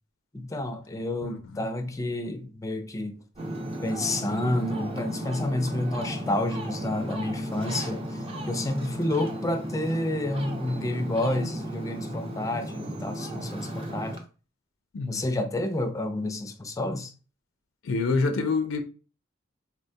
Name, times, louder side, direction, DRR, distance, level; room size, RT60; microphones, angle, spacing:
voice 1, 0.3-3.2 3.8-14.2 15.1-17.1, left 1 dB, 15° left, 0.4 m, -30 dB
Ocean, 3.3-14.2, equal, 30° right, 0.6 m, -34 dB
voice 2, 17.8-18.8, left 3 dB, 80° left, 0.5 m, -26 dB
4.1 x 2.1 x 2.7 m
head